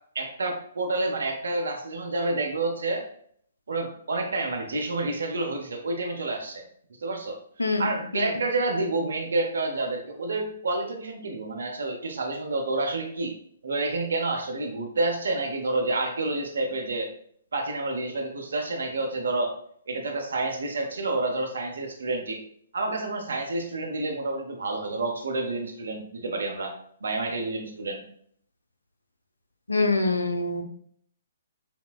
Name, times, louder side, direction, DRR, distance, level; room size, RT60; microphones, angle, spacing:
voice 1, 0.1-3.0 3.7-6.6 7.0-13.3 13.6-17.1 17.5-19.5 19.9-22.4 22.7-26.7 27.0-28.0, right 2 dB, 65° right, 3 dB, 0.7 m, -29 dB
voice 2, 7.6-8.3 29.7-30.6, left 3 dB, 80° left, 4 dB, 0.5 m, -25 dB
4.2 x 2.0 x 2.3 m, 0.63 s
figure-of-eight pair, 125°, 0 cm